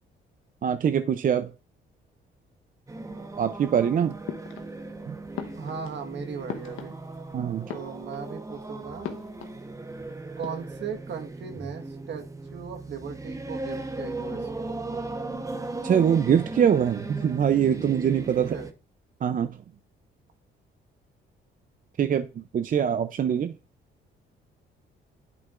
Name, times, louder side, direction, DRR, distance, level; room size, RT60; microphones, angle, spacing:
voice 1, 0.6-1.5 3.4-4.2 5.1-5.2 7.3-7.7 15.8-18.5 19.2-19.6 22.0-23.5, right 8 dB, 45° right, 0.5 m, -23 dB
sound 1, 2.9-18.7, right 2 dB, 15° right, 1.0 m, -37 dB
sound 2, 4.3-5.0 5.3-7.3 7.6-8.4 9.0-10.0 10.3-10.8, left 9 dB, 90° left, 1.1 m, -40 dB
voice 2, 5.6-7.0 7.7-9.1 10.4-14.5 14.9-15.0 18.3-18.7, right 6 dB, 65° right, 1.5 m, -37 dB
9.3 x 8.5 x 2.5 m
cardioid pair, 90°, 20 cm